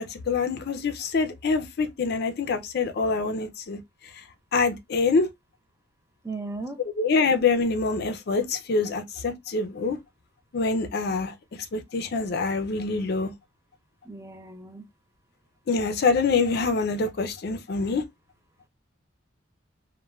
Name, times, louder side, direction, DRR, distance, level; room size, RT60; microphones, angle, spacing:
voice 1, 0.0-3.8 4.5-5.3 7.0-10.0 10.5-11.3 11.7-13.3 15.7-18.0, left 4 dB, 55° left, 0.4 m, -25 dB
voice 2, 6.2-6.8 14.1-14.9, right 3 dB, 15° right, 0.3 m, -36 dB
3.1 x 2.1 x 2.2 m
head